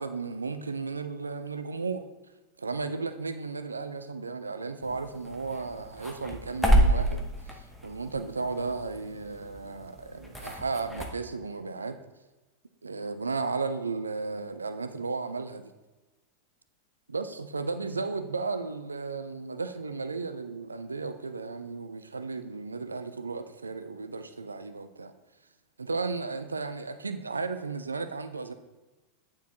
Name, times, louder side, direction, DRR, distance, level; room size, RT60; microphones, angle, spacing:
voice 1, 0.0-2.0 2.6-7.3 7.5-12.0 12.8-15.7 17.1-25.1 25.8-28.5, right 4 dB, 80° right, 10 dB, 0.4 m, -34 dB
sound 1, 4.8-11.1, right 1 dB, ahead, 0.9 m, -29 dB
9.1 x 4.4 x 2.9 m, 1.1 s
figure-of-eight pair, 90°, 0 cm